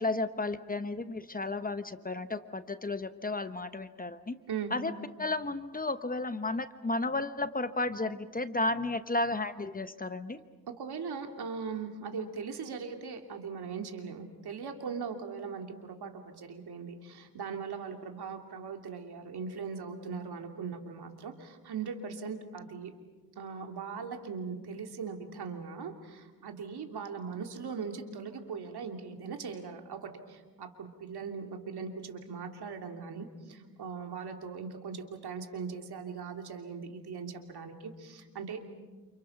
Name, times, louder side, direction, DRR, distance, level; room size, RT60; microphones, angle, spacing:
voice 1, 0.0-4.4 4.7-4.9 5.2-10.4, left 2 dB, 20° left, 11 dB, 1.0 m, -33 dB
voice 2, 10.7-22.9 23.4-38.7, right 5 dB, 70° right, 4 dB, 3.0 m, -40 dB
29.0 x 28.5 x 6.0 m, 1.3 s
cardioid pair, 105°, 40 cm